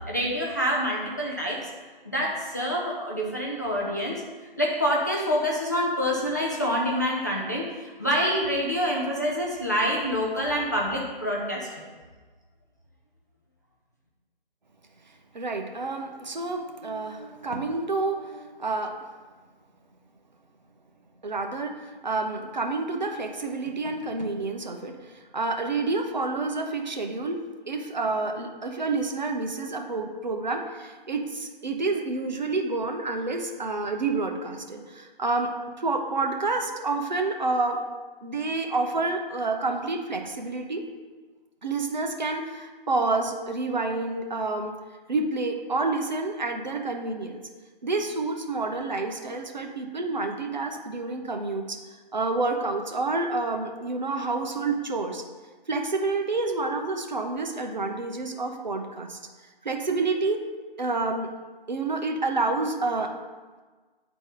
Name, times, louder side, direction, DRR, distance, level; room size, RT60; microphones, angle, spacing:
voice 1, 0.1-1.6 2.1-4.2 4.6-11.7, equal, 20° left, -4 dB, 0.5 m, -26 dB
voice 2, 15.3-19.0 21.2-27.4 27.7-35.5 35.8-37.8 38.2-40.8 41.6-44.7 45.1-47.4 47.8-51.8 52.1-55.2 55.7-59.2 59.6-60.4 60.8-61.3 61.7-63.1, right 3 dB, 50° right, 3 dB, 0.8 m, -29 dB
9.6 x 4.0 x 3.8 m, 1.3 s
figure-of-eight pair, 150°, 29 cm